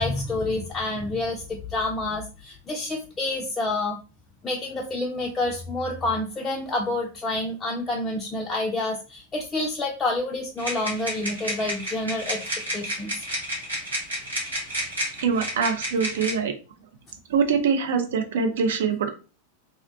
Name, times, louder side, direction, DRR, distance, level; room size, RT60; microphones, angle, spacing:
voice 1, 0.0-4.0 4.4-12.4 12.7-13.3, left 2 dB, 20° left, -1 dB, 0.4 m, -28 dB
sound 1, 10.6-16.3, equal, 80° right, 1.0 m, -31 dB
voice 2, 15.2-16.5 17.3-19.1, right 5 dB, 60° right, 6 dB, 0.5 m, -24 dB
2.7 x 2.1 x 2.6 m, 0.34 s
figure-of-eight pair, 90°, 0 cm